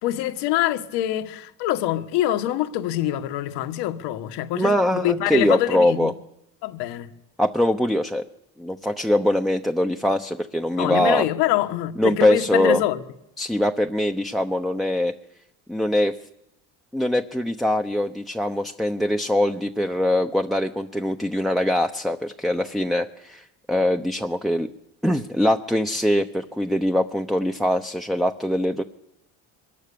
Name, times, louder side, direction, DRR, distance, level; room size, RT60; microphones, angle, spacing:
voice 1, 0.0-6.1 6.6-7.1 10.8-13.0, left 13 dB, 85° left, 1.6 m, -25 dB
voice 2, 4.5-6.1 7.4-8.2 8.6-11.3 12.0-12.8 13.4-15.1 15.7-16.1 16.9-24.7 25.0-28.8, left 1 dB, ahead, 0.9 m, -22 dB
23.0 x 20.0 x 7.0 m
cardioid pair, 95°, 40 cm